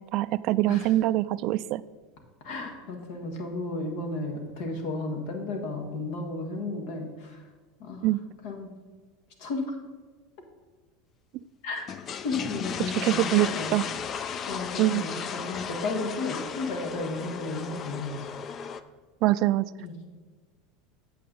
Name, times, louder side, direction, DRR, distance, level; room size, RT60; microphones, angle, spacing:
voice 1, 0.1-1.8 8.0-8.2 13.0-13.9 14.8-15.0 19.2-19.7, right 16 dB, 55° right, 16 dB, 0.3 m, -24 dB
voice 2, 2.4-7.4 7.8-8.1 8.4-8.7 9.4-9.7 11.6-11.9 12.2-13.8 14.5-18.3 19.8-20.1, left 3 dB, 70° left, 3 dB, 1.7 m, -33 dB
sound 1, 11.8-18.8, left 7 dB, 40° left, 0.5 m, -35 dB
8.6 x 7.4 x 3.9 m, 1.4 s
hypercardioid pair, 95°, 0 cm